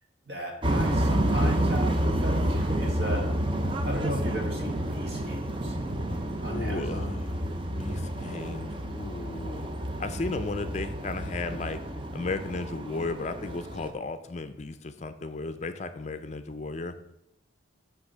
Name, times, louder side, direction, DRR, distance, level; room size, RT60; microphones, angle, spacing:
voice 1, 0.3-3.3 3.8-5.8 6.4-7.1, equal, 55° right, 1 dB, 1.8 m, -35 dB
sound 1, 0.6-13.9, right 1 dB, 25° right, 0.6 m, -29 dB
voice 2, 6.5-7.4 7.8-9.7 10.0-11.8 12.1-16.9, left 3 dB, 35° left, 9 dB, 0.5 m, -34 dB
9.7 x 3.5 x 6.6 m, 0.83 s
head